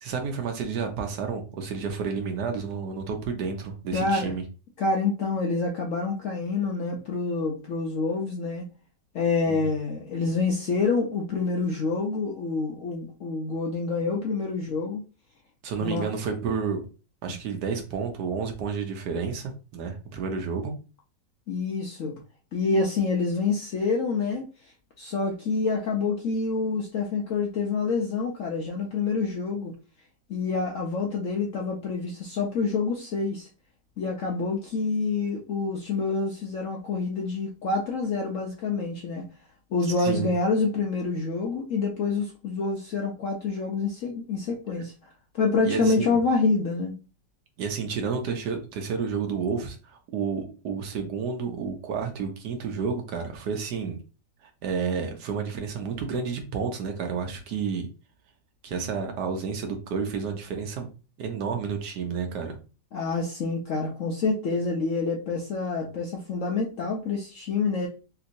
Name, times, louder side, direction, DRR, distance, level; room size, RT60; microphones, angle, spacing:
voice 1, 0.0-4.4 9.5-9.6 15.6-16.8 17.2-20.7 40.0-40.3 45.6-46.2 47.6-54.0 54.4-57.9 58.6-60.9 61.2-62.6, right 5 dB, 70° right, 4 dB, 1.3 m, -30 dB
voice 2, 3.9-4.3 4.8-8.6 9.1-15.0 15.8-16.1 17.3-17.4 21.5-22.1 22.5-29.7 30.3-33.5 34.0-39.2 39.7-46.9 62.9-67.9, left 4 dB, 70° left, 0 dB, 0.7 m, -27 dB
3.4 x 2.9 x 2.6 m, 0.34 s
omnidirectional pair, 1.9 m